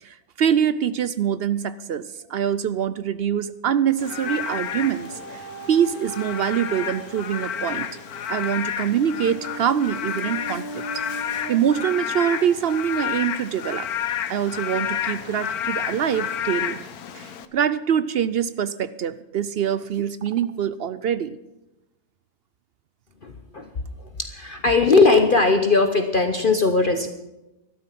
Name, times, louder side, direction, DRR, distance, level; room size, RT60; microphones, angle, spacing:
voice 1, 0.0-7.9 8.3-13.9 14.3-16.8 17.1-21.4, right 8 dB, 65° right, 14 dB, 0.6 m, -24 dB
Frog / Rain, 4.0-17.5, left 9 dB, 85° left, 1.4 m, -31 dB
sound 1, 4.0-13.1 13.8-13.9, right 2 dB, 90° right, 2.4 m, -40 dB
voice 2, 23.2-23.7 24.2-27.1, left 3 dB, 40° left, 7 dB, 1.0 m, -19 dB
13.5 x 12.0 x 5.9 m, 0.98 s
omnidirectional pair, 1.5 m